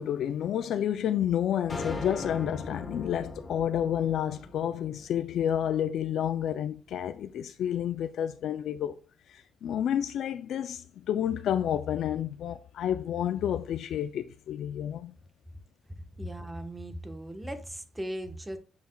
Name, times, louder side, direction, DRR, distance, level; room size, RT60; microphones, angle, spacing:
voice 1, 0.0-8.9 9.3-15.1, left 10 dB, 70° left, 0.3 m, -30 dB
sound 1, 1.7-6.1, left 2 dB, 30° left, 1.2 m, -40 dB
voice 2, 16.2-18.6, right 1 dB, 15° right, 1.1 m, -38 dB
7.5 x 5.8 x 2.3 m
cardioid pair, 90°, 0 cm